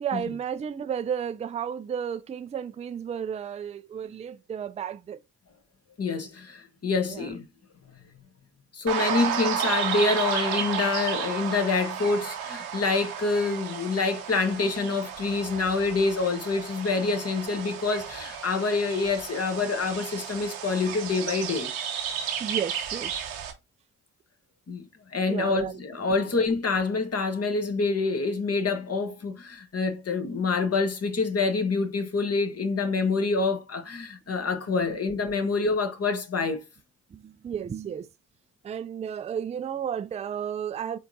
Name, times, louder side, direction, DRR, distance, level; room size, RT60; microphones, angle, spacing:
voice 1, 0.0-5.2 7.1-7.3 22.4-23.1 25.3-25.8 37.1-38.1 38.6-41.0, right 8 dB, 20° right, 0.3 m, -32 dB
voice 2, 6.0-7.5 8.7-21.7 24.7-24.9 25.1-36.6, left 4 dB, 35° left, 1.2 m, -26 dB
sound 1, 8.9-23.5, right 8 dB, 85° right, 0.8 m, -32 dB
4.4 x 3.8 x 2.7 m
hypercardioid pair, 40°, 41 cm